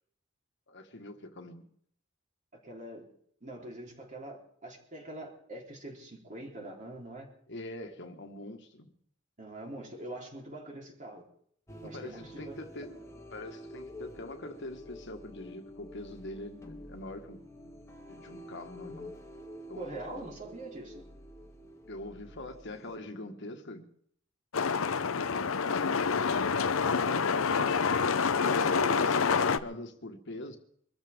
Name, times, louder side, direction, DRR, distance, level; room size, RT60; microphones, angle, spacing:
voice 1, 0.7-1.7 7.5-8.9 11.8-13.0 13.3-17.4 18.1-19.2 19.7-20.3 21.9-23.8 24.9-26.0 28.4-30.6, left 1 dB, 60° left, 5 dB, 1.6 m, -44 dB
voice 2, 2.6-3.1 3.4-7.3 9.4-11.3 11.8-12.6 19.7-21.0 26.8-27.7 28.4-29.0, right 1 dB, 40° right, 0 dB, 3.8 m, -43 dB
sound 1, 11.7-23.0, left 1 dB, 15° left, 1.6 m, -48 dB
sound 2, 24.5-29.6, left 5 dB, 90° left, 0.7 m, -27 dB
23.5 x 14.0 x 3.7 m, 0.64 s
head